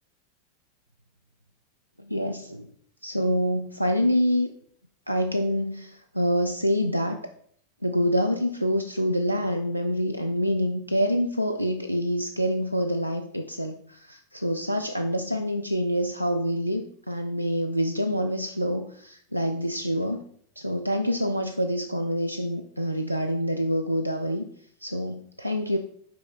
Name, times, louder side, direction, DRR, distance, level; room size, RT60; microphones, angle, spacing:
voice 1, 2.1-2.7 3.0-4.5 5.1-7.2 7.8-20.2 20.6-24.4 24.8-25.8, equal, 90° right, 5 dB, 0.3 m, -26 dB
5.6 x 4.7 x 3.9 m, 0.63 s
figure-of-eight pair, 90°, 0 cm